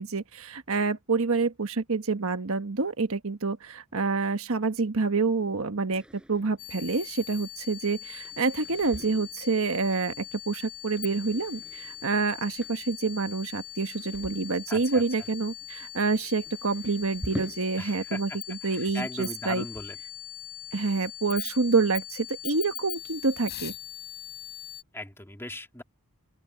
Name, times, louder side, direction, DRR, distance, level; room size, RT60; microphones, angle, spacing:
voice 1, 0.0-6.0 6.3-19.6 20.7-23.7, right 4 dB, 65° right, 1.3 m, -27 dB
sound 1, 5.9-18.2 18.5-20.1, equal, 5° right, 5.9 m, -46 dB
sound 2, 6.6-24.8, left 12 dB, 50° left, 6.5 m, -41 dB
voice 2, 14.7-15.0 17.8-20.0 24.9-25.8, left 1 dB, 10° left, 2.1 m, -38 dB
open air
head